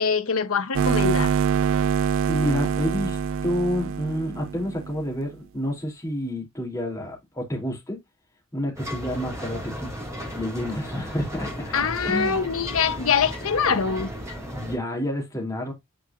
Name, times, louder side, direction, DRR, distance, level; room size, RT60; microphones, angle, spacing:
voice 1, 0.0-1.3 11.7-14.1, left 6 dB, 75° left, 0.9 m, -24 dB
sound 1, 0.7-5.1, right 6 dB, 65° right, 0.3 m, -25 dB
voice 2, 2.3-8.0 8.5-9.9 10.3-11.7 12.1-12.4 14.5-15.7, equal, 15° left, 2.7 m, -29 dB
sound 2, 8.8-14.8, equal, 15° right, 2.5 m, -35 dB
9.6 x 4.8 x 2.4 m
head